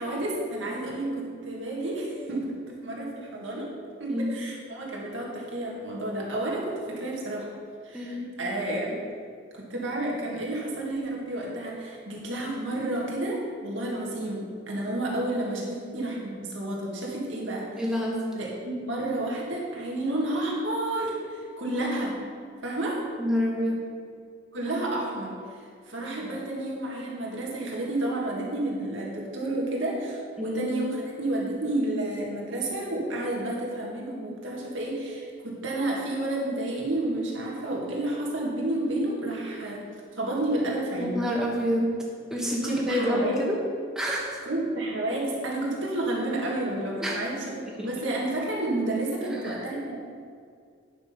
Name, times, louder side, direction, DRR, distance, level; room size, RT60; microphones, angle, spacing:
voice 1, 0.0-3.7 4.0-7.5 7.8-9.0 9.5-17.9 18.3-22.2 22.6-23.0 24.5-39.9 40.1-41.2 42.6-43.4 44.4-50.0, right 1 dB, 70° right, -3 dB, 2.1 m, -30 dB
voice 2, 7.9-8.3 17.8-18.2 23.2-23.8 30.4-30.6 41.0-41.9 42.3-43.6 43.9-44.4 47.0-47.2 47.8-47.9 49.3-49.6, equal, 5° right, -4 dB, 1.5 m, -28 dB
9.8 x 6.1 x 5.7 m, 2.2 s
head